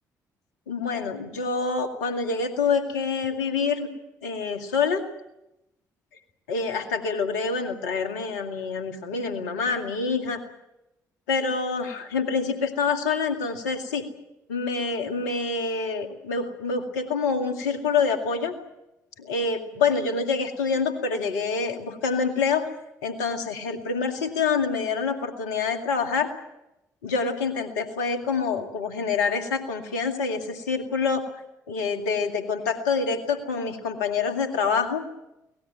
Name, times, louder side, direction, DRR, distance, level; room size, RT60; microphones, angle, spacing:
voice 1, 0.7-3.9 4.2-5.0 6.5-10.4 11.3-14.0 14.5-18.5 19.2-22.7 23.0-26.3 27.0-31.2 31.7-35.1, left 5 dB, 75° left, 5 dB, 2.1 m, -26 dB
24.0 x 18.5 x 9.0 m, 0.92 s
figure-of-eight pair, 40°, 9 cm